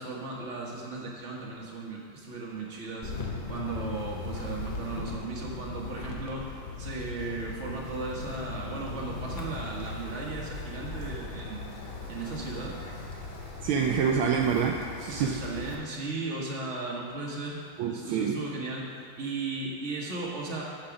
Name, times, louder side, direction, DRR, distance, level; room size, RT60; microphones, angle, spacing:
voice 1, 0.0-3.2 3.5-6.5 6.8-11.7 12.1-12.8 15.1-17.6 17.9-20.6, right 3 dB, 35° right, -3 dB, 1.4 m, -36 dB
Wind, 3.0-15.7, left 3 dB, 45° left, 0.6 m, -38 dB
voice 2, 13.6-15.3 17.8-18.4, right 7 dB, 75° right, 2 dB, 1.4 m, -27 dB
8.6 x 6.2 x 5.9 m, 2.5 s
omnidirectional pair, 2.4 m